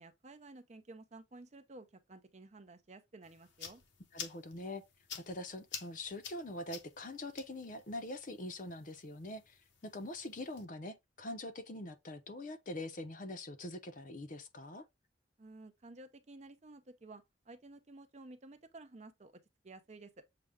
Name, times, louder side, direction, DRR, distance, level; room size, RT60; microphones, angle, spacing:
voice 1, 0.0-3.8 15.4-19.3 19.6-20.1, right 2 dB, 35° right, 0.6 m, -53 dB
sound 1, 3.2-10.6, left 6 dB, 80° left, 0.9 m, -51 dB
voice 2, 4.1-4.8 5.2-9.6 9.8-14.8, left 1 dB, 45° left, 0.6 m, -44 dB
6.7 x 2.3 x 3.5 m
head